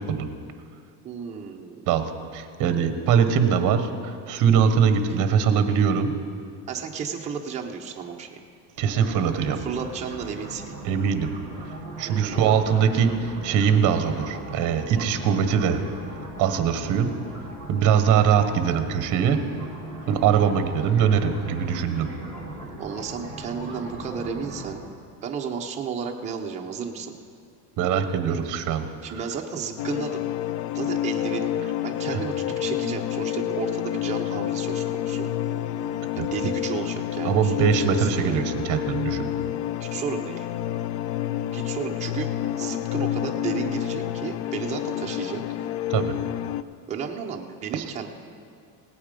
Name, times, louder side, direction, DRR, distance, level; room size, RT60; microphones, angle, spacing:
voice 1, 1.0-1.9 6.7-8.4 9.6-10.8 12.0-12.5 22.8-24.9 25.2-27.1 29.0-30.3 30.7-35.3 36.2-38.4 39.8-40.5 41.5-42.3 42.6-45.4 46.9-48.1, right 6 dB, 15° right, 0 dB, 0.6 m, -33 dB
voice 2, 1.9-6.2 8.8-9.6 10.8-11.3 12.0-15.8 16.4-17.1 17.7-19.4 20.1-22.1 27.8-28.9 32.1-32.2 36.2-36.3 37.2-39.3 45.9-46.1 47.7-47.8, right 7 dB, 40° right, 9 dB, 1.1 m, -22 dB
sound 1, 8.8-24.8, right 1 dB, 15° left, 2.7 m, -39 dB
sound 2, 29.8-46.6, left 12 dB, 70° left, 0.6 m, -29 dB
17.5 x 8.5 x 5.2 m, 2.2 s
cardioid pair, 155°, 48 cm